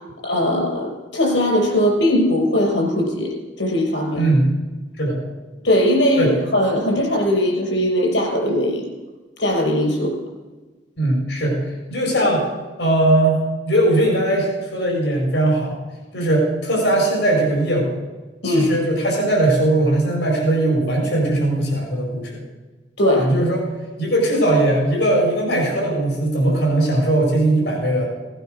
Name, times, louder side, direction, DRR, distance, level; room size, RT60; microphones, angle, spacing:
voice 1, 0.0-3.3 3.6-4.2 5.6-8.8 9.4-10.1 18.4-18.7 23.0-23.3, left 1 dB, 85° left, 0 dB, 5.8 m, -19 dB
voice 2, 4.1-4.5 5.0-5.2 6.2-6.3 11.0-12.4 12.8-13.4 13.7-15.7 16.1-18.0 18.4-22.4 23.1-23.6 24.0-28.1, right 1 dB, 70° left, -1 dB, 4.8 m, -19 dB
17.5 x 9.1 x 6.5 m, 1.3 s
head